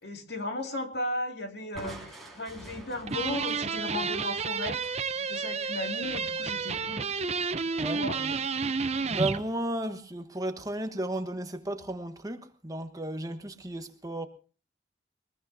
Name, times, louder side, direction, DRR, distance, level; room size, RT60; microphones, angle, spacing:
voice 1, 0.0-4.8 5.1-7.0 7.8-8.2, left 1 dB, 65° left, 2.4 m, -35 dB
Crushing, 1.7-5.5, right 1 dB, ahead, 5.1 m, -47 dB
sound 1, 3.1-9.4, right 5 dB, 35° right, 0.7 m, -31 dB
voice 2, 7.8-8.4 9.1-14.3, right 1 dB, 20° right, 1.2 m, -34 dB
22.5 x 20.5 x 2.7 m
head